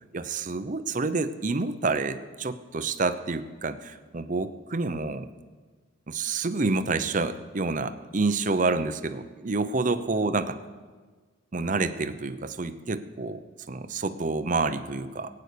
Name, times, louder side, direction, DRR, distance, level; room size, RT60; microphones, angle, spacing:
voice 1, 0.1-5.3 6.1-10.6 11.5-15.3, right 3 dB, 40° right, 11 dB, 0.7 m, -28 dB
18.0 x 9.7 x 6.7 m, 1.4 s
head